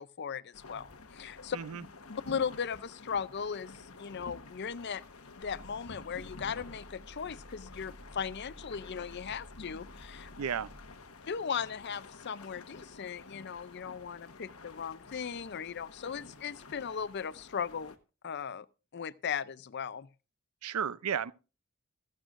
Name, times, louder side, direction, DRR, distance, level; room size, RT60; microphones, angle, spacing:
voice 1, 0.0-1.6 2.3-5.0 5.4-10.3 11.3-17.9 18.2-18.7 18.9-20.1, left 7 dB, 50° left, 0.5 m, -37 dB
sound 1, 0.5-18.0, left 3 dB, 85° left, 1.2 m, -51 dB
voice 2, 1.5-1.8 10.4-10.7 20.6-21.3, right 7 dB, 85° right, 0.5 m, -33 dB
sound 2, 5.4-11.0, equal, 55° right, 4.3 m, -53 dB
15.0 x 14.0 x 2.5 m
head